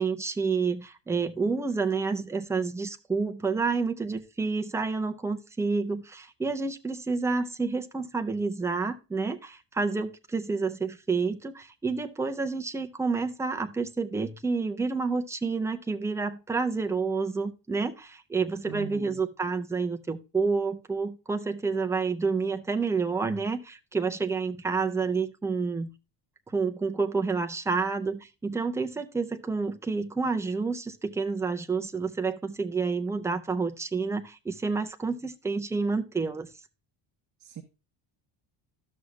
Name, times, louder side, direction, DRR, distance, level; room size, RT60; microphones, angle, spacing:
voice 1, 0.0-25.9 26.5-36.5, right 4 dB, 5° right, 0.4 m, -29 dB
voice 2, 18.7-19.2 37.4-37.6, right 13 dB, 40° right, 0.9 m, -40 dB
13.0 x 6.4 x 2.2 m
cardioid pair, 170°, 47 cm